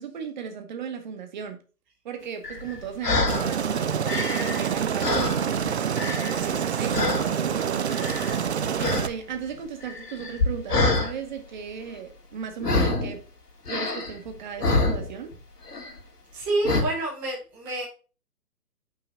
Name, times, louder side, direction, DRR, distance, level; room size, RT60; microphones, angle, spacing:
voice 1, 0.0-1.6 2.0-8.1 8.4-13.2 13.7-15.3, right 7 dB, 30° right, 1.1 m, -36 dB
sound 1, 2.4-3.5 3.9-5.7 6.0-6.6 6.9-7.3 7.9-8.5 8.8-9.1 9.4-11.1 12.6-13.1 13.7-15.4 15.7-16.0 16.6-16.8, left 2 dB, 80° left, 2.4 m, -26 dB
Aircraft, 3.3-9.1, right 7 dB, 45° right, 0.5 m, -27 dB
voice 2, 16.3-17.8, right 2 dB, 5° right, 0.6 m, -28 dB
5.8 x 4.0 x 6.1 m
hypercardioid pair, 155°, 46 cm